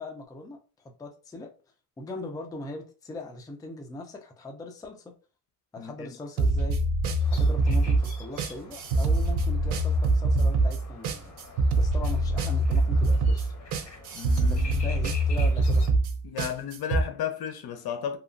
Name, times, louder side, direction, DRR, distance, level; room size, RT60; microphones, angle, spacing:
voice 1, 0.0-1.5 2.0-5.1 5.7-6.8 7.3-11.4 11.7-13.5 14.4-15.8, left 2 dB, 10° left, 0.4 m, -40 dB
voice 2, 5.8-6.1 14.1-14.9 16.2-18.2, left 8 dB, 65° left, 0.7 m, -34 dB
sound 1, 6.4-17.0, right 2 dB, 75° right, 0.5 m, -24 dB
sound 2, 7.2-15.9, left 3 dB, 45° left, 1.2 m, -46 dB
2.8 x 2.4 x 2.5 m
cardioid pair, 125°, 40 cm